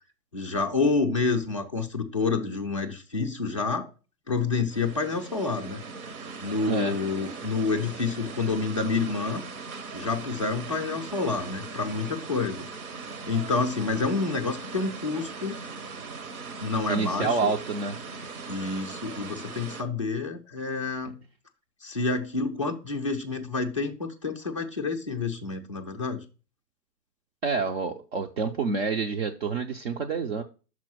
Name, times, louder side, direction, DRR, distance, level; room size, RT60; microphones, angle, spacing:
voice 1, 0.3-3.9 4.3-5.8 6.4-9.4 9.9-12.6 13.2-15.6 16.6-17.5 18.5-21.2 21.8-26.2, left 4 dB, 20° left, 0.3 m, -28 dB
sound 1, 4.7-19.8, right 4 dB, 60° right, 1.2 m, -40 dB
voice 2, 16.9-18.0 27.4-30.4, right 4 dB, 40° right, 0.6 m, -28 dB
6.1 x 4.4 x 5.9 m
figure-of-eight pair, 115°, 49 cm